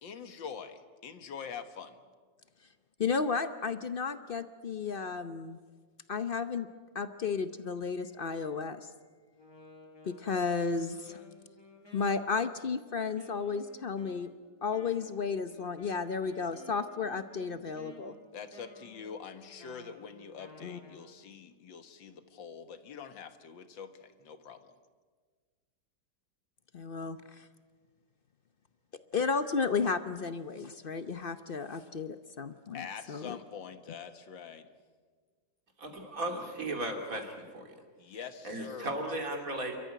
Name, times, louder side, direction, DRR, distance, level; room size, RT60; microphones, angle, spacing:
voice 1, 0.0-2.0 18.3-24.7 32.7-34.7 38.0-39.2, left 6 dB, 80° left, 9 dB, 2.1 m, -45 dB
voice 2, 3.0-5.6 6.1-6.7 6.9-8.8 10.0-11.2 11.9-14.3 14.6-18.1 20.6-20.8 26.7-27.5 29.1-33.4, left 5 dB, 60° left, 10 dB, 0.5 m, -33 dB
Wind instrument woodwind instrument, 9.3-21.1, left 1 dB, 10° left, 4.5 m, -55 dB
voice 3, 35.8-37.8 38.4-39.8, right 1 dB, 45° right, 3 dB, 3.4 m, -36 dB
29.0 x 14.0 x 9.2 m, 1.5 s
omnidirectional pair, 2.0 m